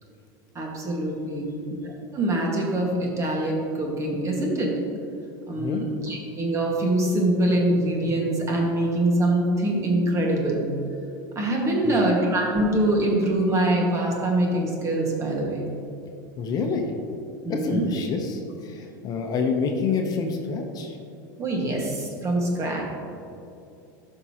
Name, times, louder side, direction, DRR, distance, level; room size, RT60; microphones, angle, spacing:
voice 1, 0.6-1.5 1.8-4.7 5.5-10.7 11.4-15.7 17.4-17.9 21.4-22.8, right 1 dB, 30° right, -1 dB, 1.7 m, -24 dB
voice 2, 16.4-16.9 17.5-21.0, left 5 dB, 40° left, 3 dB, 0.9 m, -27 dB
12.5 x 5.5 x 3.0 m, 2.6 s
supercardioid pair, 110°, 10 cm